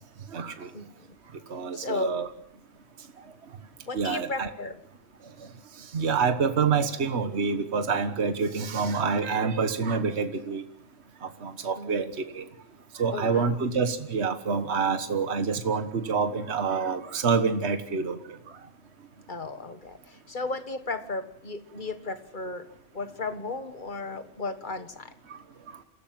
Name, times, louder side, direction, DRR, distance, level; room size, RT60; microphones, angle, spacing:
voice 1, 0.3-0.7 1.5-2.3 3.9-4.5 5.9-10.6 11.2-12.4 12.9-18.4 25.3-25.4, right 5 dB, 60° right, 8 dB, 1.7 m, -27 dB
voice 2, 1.7-2.1 3.9-4.8 11.8-12.0 13.1-13.6 19.3-22.7 22.9-25.1, left 3 dB, 40° left, 9 dB, 1.7 m, -34 dB
27.5 x 16.5 x 7.7 m, 0.73 s
omnidirectional pair, 1.3 m